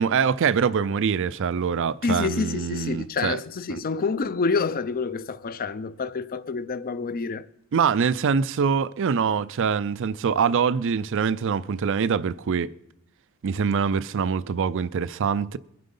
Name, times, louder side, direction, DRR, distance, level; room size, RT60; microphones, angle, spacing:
voice 1, 0.0-3.4 3.7-3.8 7.7-12.7 13.4-15.6, right 6 dB, 60° right, 0.4 m, -24 dB
voice 2, 2.0-7.4, left 4 dB, 40° left, 0.5 m, -28 dB
22.5 x 7.7 x 5.4 m
head